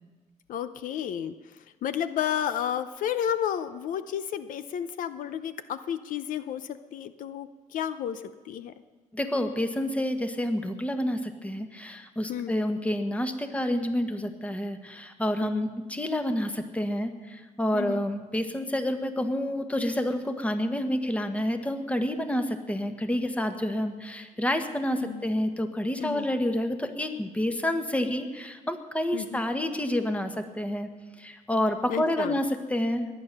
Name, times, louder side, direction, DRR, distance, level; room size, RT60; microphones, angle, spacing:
voice 1, 0.5-1.3 1.8-8.7 12.3-12.6 15.4-15.7 17.7-18.0 25.0-25.2 26.0-26.3 29.1-29.4 31.9-32.4, left 9 dB, 85° left, 12 dB, 0.7 m, -32 dB
voice 2, 9.1-30.9 31.2-33.1, left 1 dB, 10° left, 7 dB, 1.4 m, -29 dB
21.5 x 9.2 x 6.6 m, 1.4 s
cardioid pair, 115°, 14 cm